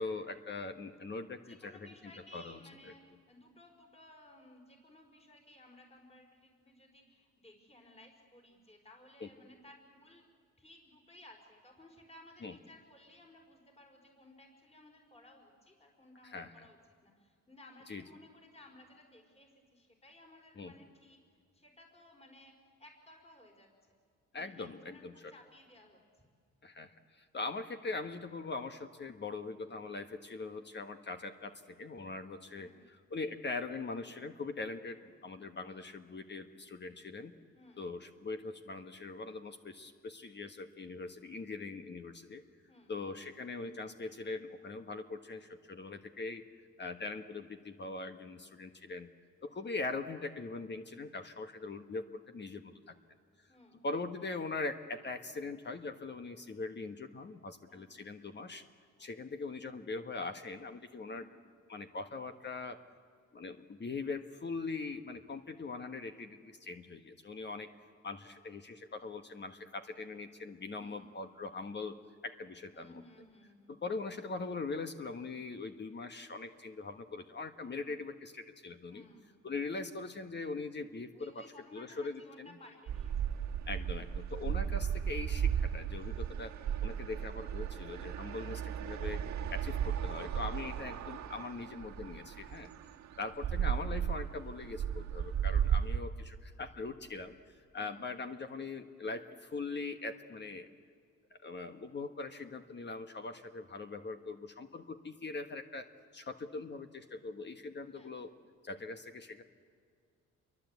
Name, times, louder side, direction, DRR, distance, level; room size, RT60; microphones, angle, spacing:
voice 1, 0.0-1.7 2.3-2.6 2.8-2.9 9.2-9.3 12.4-12.5 16.2-16.7 17.9-18.0 20.6-20.7 24.3-25.3 26.6-37.3 37.8-42.4 42.9-46.4 46.8-49.1 49.4-52.9 53.8-58.6 59.0-61.3 61.7-62.8 63.3-67.7 68.0-72.0 72.2-73.0 73.7-79.1 79.4-82.5 83.7-86.5 86.8-89.2 89.5-92.7 93.2-97.3 97.7-100.7 101.3-105.9 106.1-108.3 108.6-109.4, left 3 dB, 35° left, 7 dB, 1.4 m, -41 dB
voice 2, 1.4-10.2 10.6-24.0 24.3-26.0 32.5-32.8 37.5-37.9 42.7-42.9 49.5-49.7 53.5-53.8 57.7-58.1 59.0-59.1 61.0-61.2 70.7-71.0 72.7-73.8 78.9-79.5 80.9-83.6 84.5-84.7 97.7-97.9 107.9-108.1, left 1 dB, 20° left, 2 dB, 4.8 m, -59 dB
sound 1, 82.9-96.0, right 8 dB, 70° right, 1.7 m, -35 dB
27.0 x 23.0 x 8.3 m, 2.1 s
cardioid pair, 90°, 30 cm